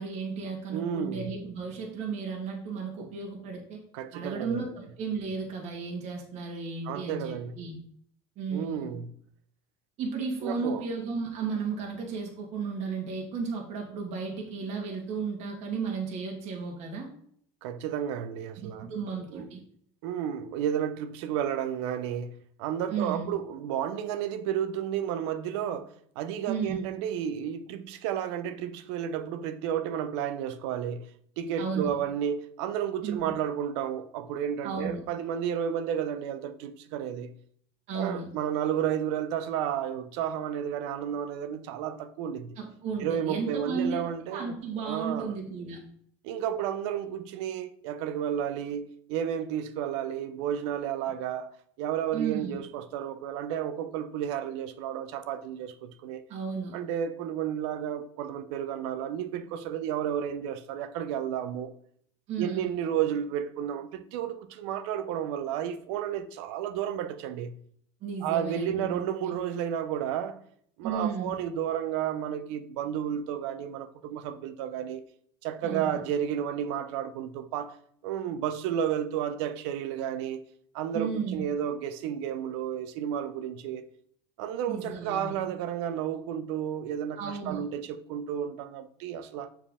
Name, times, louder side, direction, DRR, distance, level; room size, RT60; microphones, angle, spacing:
voice 1, 0.0-3.8 4.1-7.8 8.3-8.9 10.0-17.1 18.6-19.6 22.9-23.3 26.5-26.8 31.6-31.9 33.0-33.2 34.6-35.0 37.9-38.3 42.6-45.8 52.1-52.6 56.3-56.8 62.3-62.7 68.0-69.3 70.8-71.4 75.6-76.0 80.9-81.5 84.7-85.4 87.2-87.6, right 5 dB, 50° right, 1.8 m, -34 dB
voice 2, 0.7-1.4 3.0-3.1 3.9-4.7 6.8-7.6 8.5-9.1 10.4-10.8 17.6-18.9 19.3-19.4 20.0-37.3 37.9-42.6 43.0-44.6 44.8-45.3 46.2-51.5 51.8-56.2 56.7-61.7 62.4-67.5 68.2-70.4 70.8-75.0 75.4-77.8 78.0-80.4 80.7-83.9 84.4-89.5, right 9 dB, 75° right, 0.7 m, -32 dB
7.0 x 4.5 x 3.6 m
supercardioid pair, 135°, 15 cm